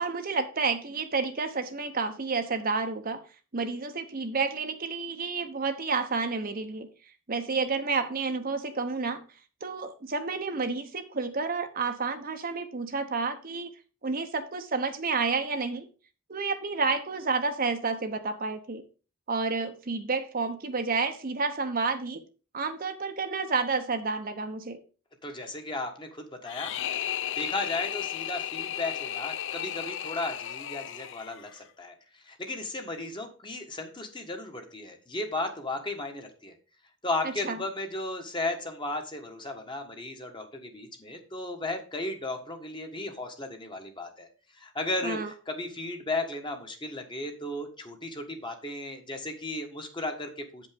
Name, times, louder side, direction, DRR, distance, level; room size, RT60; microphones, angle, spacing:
voice 1, 0.0-3.2 3.5-6.9 7.3-9.2 9.6-13.7 14.0-15.9 16.3-18.8 19.3-22.2 22.5-24.8 37.4-37.6 45.0-45.3, right 4 dB, 45° right, 7 dB, 0.9 m, -30 dB
voice 2, 25.2-27.0 27.3-36.5 37.0-44.3 44.6-50.7, left 2 dB, 25° left, 4 dB, 1.4 m, -35 dB
sound 1, 26.5-31.6, left 11 dB, 65° left, 0.5 m, -34 dB
8.6 x 5.3 x 5.1 m, 0.35 s
head